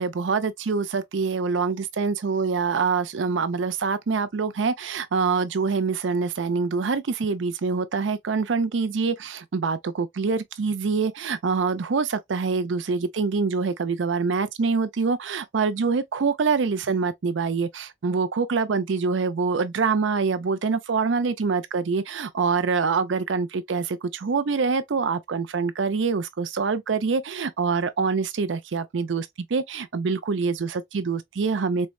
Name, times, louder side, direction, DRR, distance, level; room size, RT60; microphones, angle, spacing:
voice 1, 0.0-31.9, right 4 dB, 85° right, 0.5 m, -25 dB
4.4 x 2.1 x 2.3 m
head